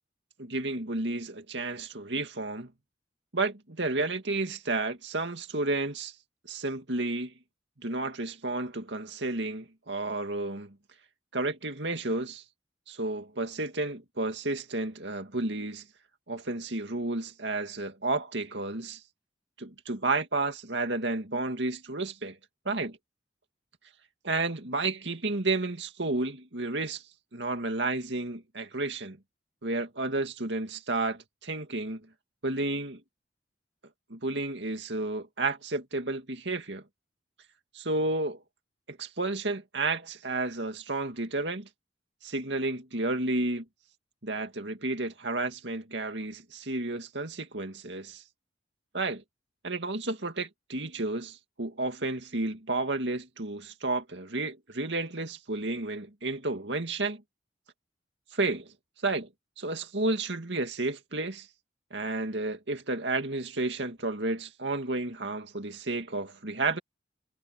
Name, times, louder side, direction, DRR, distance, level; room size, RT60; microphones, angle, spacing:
voice 1, 0.4-2.7 3.3-6.1 6.4-7.3 7.8-10.8 11.3-12.4 12.9-15.9 16.3-19.0 19.6-22.4 22.6-23.0 24.2-27.0 27.3-29.2 29.6-32.0 32.4-33.0 34.1-36.8 37.7-38.4 38.9-41.7 42.2-43.6 44.2-48.2 48.9-49.2 49.6-57.2 58.3-58.7 59.0-59.3 59.6-61.5 61.9-66.8, right 2 dB, 70° right, 2.4 m, -31 dB
head